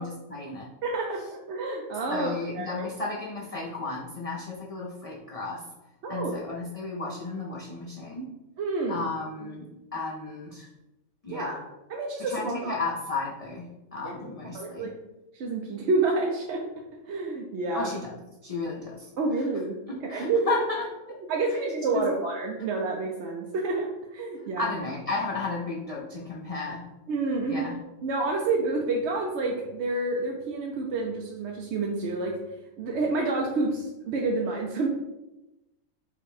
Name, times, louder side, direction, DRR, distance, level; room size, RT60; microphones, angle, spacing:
voice 1, 0.0-0.7 2.1-5.6 6.1-8.3 8.9-10.7 11.2-11.6 12.2-14.9 17.7-19.1 19.9-20.9 21.5-21.6 21.9-22.1 24.6-26.8 27.5-27.8, left 3 dB, 45° left, -3 dB, 0.4 m, -33 dB
voice 2, 0.8-2.9 6.0-6.3 8.6-9.0 9.4-9.5 11.3-11.6 11.9-12.7 14.0-14.1 14.5-14.9 15.3-16.6 17.1-17.9 19.2-19.7 20.1-20.5 21.3-24.8 27.1-27.7 28.0-32.4 32.8-34.9, right 3 dB, 65° right, 0 dB, 0.8 m, -29 dB
5.0 x 2.2 x 4.7 m, 0.97 s
omnidirectional pair, 1.4 m